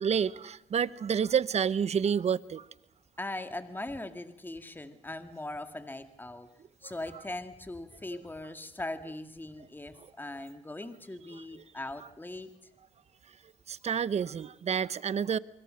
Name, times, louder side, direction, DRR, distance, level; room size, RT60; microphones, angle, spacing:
voice 1, 0.0-2.6 13.7-15.4, right 7 dB, 50° right, 19 dB, 0.9 m, -29 dB
voice 2, 3.2-6.5 6.8-12.5, left 2 dB, 15° left, 9 dB, 2.1 m, -40 dB
25.0 x 24.0 x 6.4 m, 0.89 s
supercardioid pair, 65°, 14 cm